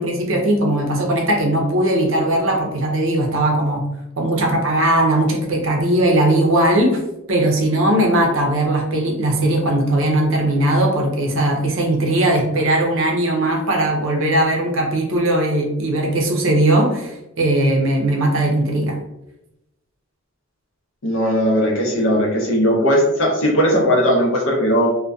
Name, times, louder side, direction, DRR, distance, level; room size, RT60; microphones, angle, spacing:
voice 1, 0.0-3.8 4.2-7.0 7.3-19.0, right 1 dB, 65° right, 1 dB, 0.5 m, -18 dB
voice 2, 21.0-25.0, equal, 65° left, -2 dB, 0.7 m, -18 dB
2.6 x 2.1 x 2.3 m, 0.90 s
head